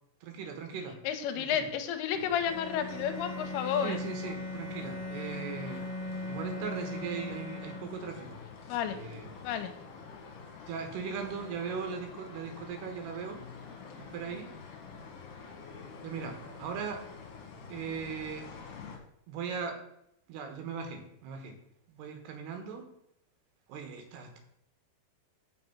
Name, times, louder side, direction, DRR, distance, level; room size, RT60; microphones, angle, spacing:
voice 1, 0.2-1.0 1.3-1.7 3.8-5.8 6.3-8.4 8.9-9.3 10.7-13.4 14.0-14.5 16.0-17.0 17.7-18.5 19.3-19.8 20.3-21.6 21.9-22.9 23.7-24.4, right 6 dB, 85° right, 5 dB, 3.2 m, -39 dB
voice 2, 1.0-4.0 8.7-9.0 9.4-9.7, left 8 dB, 85° left, 8 dB, 2.6 m, -31 dB
sound 1, 2.1-19.0, left 5 dB, 65° left, 2.5 m, -47 dB
Bowed string instrument, 2.4-8.2, left 1 dB, 10° right, 3.7 m, -39 dB
6.7 x 6.1 x 5.9 m, 0.75 s
omnidirectional pair, 4.7 m